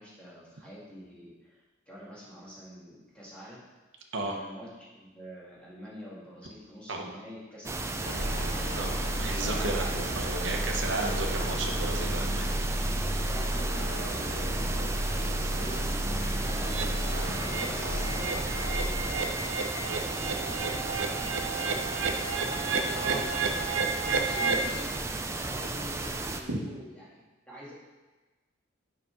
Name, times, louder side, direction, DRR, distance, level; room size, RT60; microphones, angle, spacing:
voice 1, 0.0-3.6 4.2-4.7 4.9-10.6 13.0-18.4 18.7-21.8 22.4-23.4 24.1-24.9 25.4-27.2 27.5-27.7, equal, 5° left, -8 dB, 2.3 m, -46 dB
sound 1, 7.6-26.4, right 2 dB, 15° right, 0.4 m, -34 dB
sound 2, 8.1-19.1, equal, 85° left, 1.7 m, -32 dB
voice 2, 8.8-12.9 22.9-23.2 26.5-26.6, right 2 dB, 70° right, 1 dB, 1.0 m, -34 dB
sound 3, 16.7-16.9 17.3-17.7 18.0-24.7, right 4 dB, 90° right, 0.7 m, -32 dB
6.9 x 5.1 x 6.1 m, 1.2 s
head